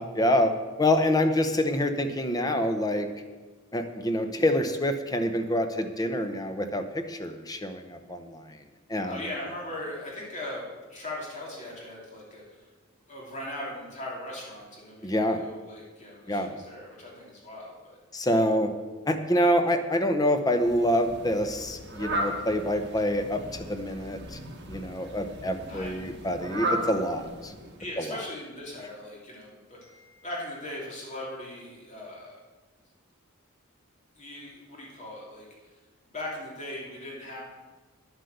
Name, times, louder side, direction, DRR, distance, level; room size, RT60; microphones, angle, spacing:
voice 1, 0.0-3.1 3.7-8.5 8.9-9.2 15.0-15.5 16.3-16.6 18.1-18.7 19.1-24.4 24.7-27.5 28.0-28.2, left 1 dB, 20° left, 7 dB, 0.8 m, -26 dB
voice 2, 9.0-12.6 13.1-18.0 25.7-26.0 27.8-32.4 34.2-35.5 36.1-37.4, left 1 dB, 35° left, -4 dB, 2.9 m, -39 dB
Fowl, 20.5-27.9, right 1 dB, 60° right, 1.6 m, -36 dB
10.0 x 7.8 x 6.7 m, 1.3 s
head